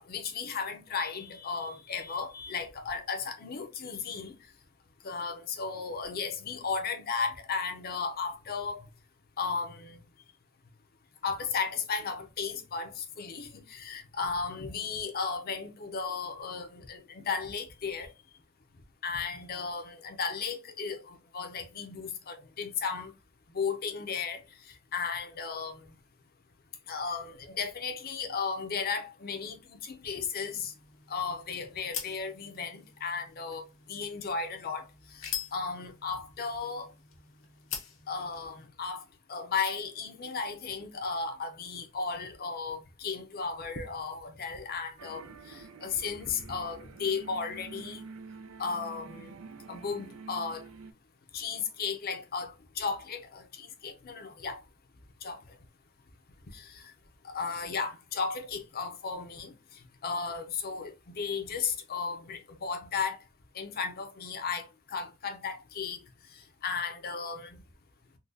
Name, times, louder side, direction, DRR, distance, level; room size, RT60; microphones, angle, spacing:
voice 1, 0.0-4.3 5.1-8.8 9.4-10.0 11.2-18.1 19.0-23.1 23.5-24.4 24.9-25.8 26.9-30.7 31.1-34.8 35.2-36.9 38.1-39.0 39.3-48.0 48.6-49.3 49.7-50.6 51.3-54.6 55.2-55.4 56.5-56.8 57.2-59.5 60.0-63.2 63.5-66.0 66.6-67.6, left 5 dB, 45° left, 0.6 m, -35 dB
sound 1, 30.4-38.7, left 8 dB, 80° left, 0.9 m, -44 dB
sound 2, 45.0-50.9, right 4 dB, 90° right, 0.4 m, -48 dB
3.8 x 2.3 x 2.5 m
head